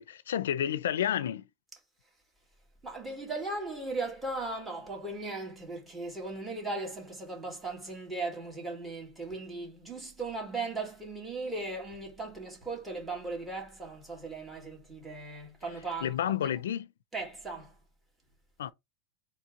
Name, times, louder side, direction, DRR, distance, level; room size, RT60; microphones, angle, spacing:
voice 1, 0.0-1.4 16.0-16.9 18.6-18.7, left 10 dB, 90° left, 0.4 m, -30 dB
voice 2, 2.8-16.1 17.1-17.8, right 3 dB, 10° right, 2.4 m, -37 dB
4.4 x 3.1 x 3.7 m
supercardioid pair, 140°, 0 cm